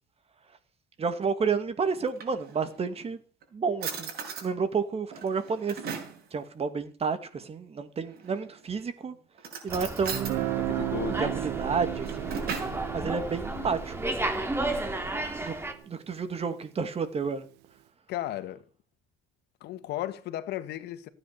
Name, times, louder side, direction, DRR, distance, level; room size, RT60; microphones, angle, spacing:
voice 1, 1.0-3.2 3.5-4.1 4.4-5.8 6.3-9.2 9.6-10.5 11.2-12.4 12.9-14.2 15.4-15.6 15.9-17.5, right 5 dB, 35° right, 2.4 m, -30 dB
Drawer open or close, 1.9-2.9 3.4-3.5 3.8-4.5 5.1-6.2 8.1-8.6 9.4-10.4 11.8-12.8, right 6 dB, 65° right, 6.6 m, -38 dB
Slam, 9.7-15.7, right 2 dB, 15° right, 3.1 m, -33 dB
Guitar, 10.1-15.9, right 19 dB, 90° right, 0.9 m, -35 dB
voice 2, 10.6-11.3 13.5-13.7 18.1-18.6 19.6-21.1, left 13 dB, 80° left, 1.7 m, -35 dB
16.5 x 9.7 x 6.8 m
cardioid pair, 110°, 17 cm